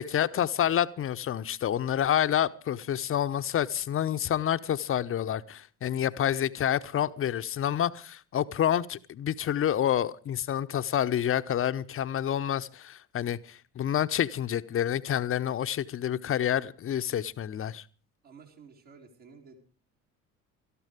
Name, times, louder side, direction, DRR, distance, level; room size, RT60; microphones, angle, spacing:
voice 1, 0.0-17.8, left 10 dB, 30° left, 0.8 m, -28 dB
voice 2, 18.2-19.6, right 5 dB, 60° right, 3.5 m, -52 dB
18.5 x 13.5 x 5.0 m
figure-of-eight pair, 55°, 43 cm